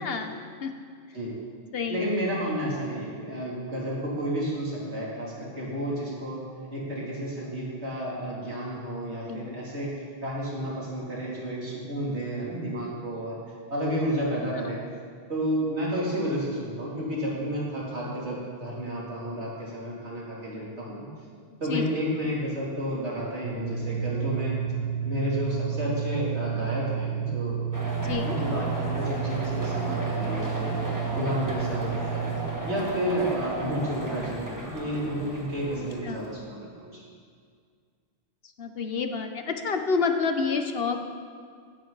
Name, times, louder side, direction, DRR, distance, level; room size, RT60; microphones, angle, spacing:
voice 1, 0.0-0.7 1.7-2.1 9.3-9.4 21.7-21.8 28.0-28.3 31.8-31.9 36.0-36.2 38.6-41.0, left 5 dB, 60° left, 6 dB, 1.1 m, -28 dB
voice 2, 1.9-6.4 6.7-9.9 10.2-13.4 13.7-14.8 15.3-21.1 21.6-24.6 25.0-27.6 28.2-30.8 31.1-32.2 32.7-37.0, equal, 80° right, -5 dB, 3.3 m, -31 dB
sound 1, 23.4-32.4, right 8 dB, 40° right, 2.4 m, -31 dB
sound 2, 27.7-36.3, right 1 dB, 15° right, 1.5 m, -34 dB
15.5 x 11.5 x 4.0 m, 2.1 s
omnidirectional pair, 1.1 m